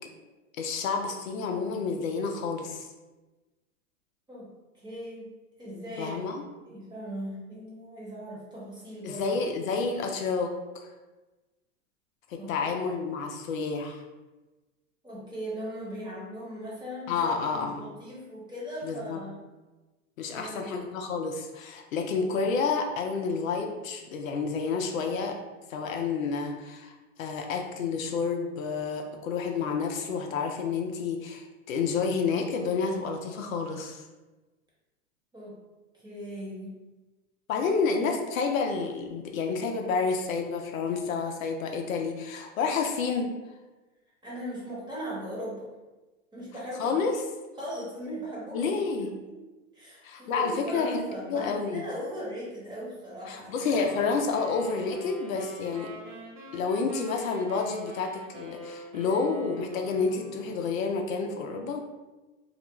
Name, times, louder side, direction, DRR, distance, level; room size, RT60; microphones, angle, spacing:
voice 1, 0.6-2.9 6.0-6.4 9.0-10.9 12.3-14.0 17.1-17.8 18.8-19.2 20.2-25.4 25.7-26.9 27.2-34.0 37.5-43.3 46.8-47.1 48.5-49.1 50.0-51.0 51.3-51.8 53.3-55.9 56.5-61.8, left 5 dB, 75° left, 3 dB, 0.5 m, -29 dB
voice 2, 4.7-5.3 5.6-6.3 6.6-9.4 12.4-12.7 15.0-19.4 20.3-20.7 35.3-35.6 35.9-36.8 44.2-45.7 46.3-47.0 47.6-48.8 49.3-49.4 49.7-53.7, equal, 10° right, -7 dB, 0.9 m, -38 dB
sound 1, 53.6-60.7, equal, 45° right, 1.1 m, -45 dB
2.4 x 2.1 x 2.9 m, 1.2 s
hypercardioid pair, 105°, 41 cm